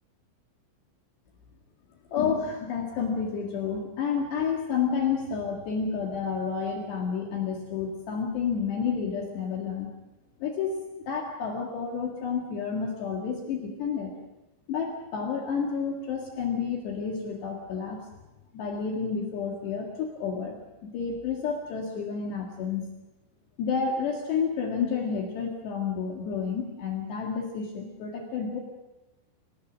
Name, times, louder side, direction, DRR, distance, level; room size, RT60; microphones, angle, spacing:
voice 1, 2.1-9.9 10.4-14.1 14.7-18.0 18.5-22.8 23.6-28.6, left 6 dB, 65° left, 0 dB, 4.0 m, -30 dB
27.0 x 18.5 x 6.3 m, 0.97 s
omnidirectional pair, 5.7 m